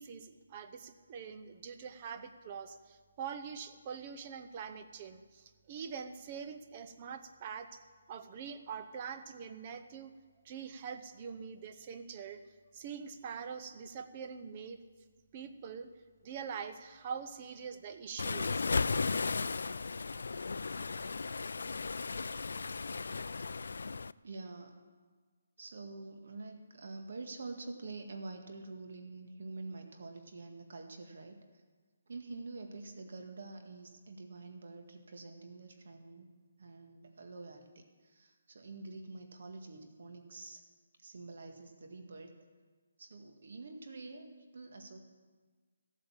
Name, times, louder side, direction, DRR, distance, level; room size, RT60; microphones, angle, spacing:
voice 1, 0.0-7.8 8.1-10.1 10.4-12.4 12.7-14.8 15.3-15.9 16.2-18.6, right 6 dB, 25° right, 9 dB, 0.7 m, -44 dB
Waves surf, 18.2-24.1, left 4 dB, 75° left, 0.3 m, -35 dB
voice 2, 24.2-24.8 25.6-31.6 32.1-36.3 36.6-40.6 41.0-42.3 43.0-45.0, right 3 dB, 60° right, 5 dB, 1.7 m, -47 dB
15.0 x 8.7 x 7.3 m, 1.4 s
hypercardioid pair, 170°, 0 cm